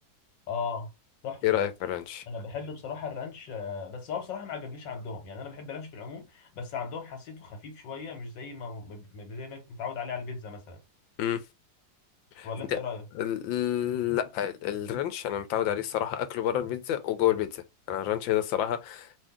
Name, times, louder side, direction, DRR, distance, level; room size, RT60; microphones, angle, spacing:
voice 1, 0.5-0.9 1.2-1.6 2.3-10.8 12.4-13.0, left 5 dB, 70° left, 1.8 m, -37 dB
voice 2, 1.4-2.2 11.2-11.4 12.4-12.8 13.2-17.6 17.9-19.1, left 11 dB, 85° left, 1.4 m, -29 dB
3.1 x 2.7 x 3.5 m
omnidirectional pair, 2.1 m